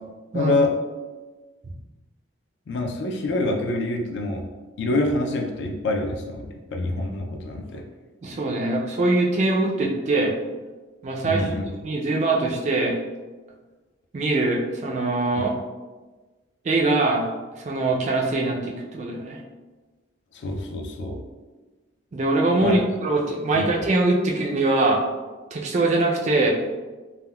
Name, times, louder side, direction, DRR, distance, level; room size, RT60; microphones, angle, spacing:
voice 1, 0.3-0.7 2.7-4.4 4.8-7.8 11.2-11.7 20.3-21.2 22.6-22.8 23.5-23.7, left 2 dB, 60° left, 2 dB, 0.4 m, -26 dB
voice 2, 8.2-10.4 11.0-11.5 11.8-13.0 14.1-15.5 16.6-17.3 17.6-19.4 22.1-25.0 25.5-26.5, right 2 dB, 35° right, 0 dB, 0.4 m, -22 dB
3.5 x 2.1 x 2.2 m, 1.3 s
head